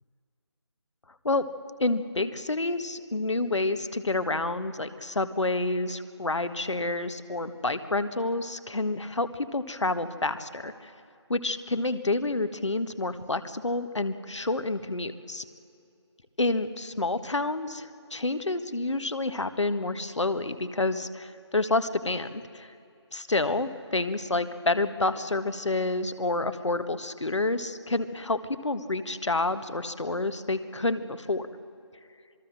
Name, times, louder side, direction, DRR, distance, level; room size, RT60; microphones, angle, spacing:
voice 1, 1.8-10.9 11.3-15.4 16.4-22.7 23.1-31.5, left 2 dB, 80° left, 11 dB, 1.7 m, -29 dB
26.5 x 20.5 x 7.6 m, 2.6 s
figure-of-eight pair, 165°, 15 cm